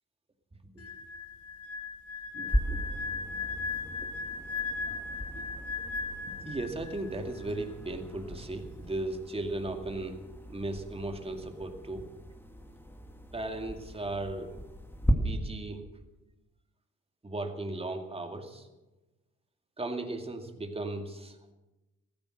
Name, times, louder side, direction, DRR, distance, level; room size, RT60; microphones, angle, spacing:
sound 1, 0.8-7.2 7.4-7.7, left 4 dB, 50° left, 2.6 m, -37 dB
voice 1, 2.3-2.8 6.3-10.2 10.5-12.0 13.3-14.5 15.1-15.8 17.2-18.7 19.8-21.5, right 2 dB, 20° right, 5 dB, 2.3 m, -36 dB
sound 2, 2.5-15.1, equal, 5° left, 2.0 m, -37 dB
15.0 x 14.0 x 6.5 m, 1.1 s
cardioid pair, 90°, 30 cm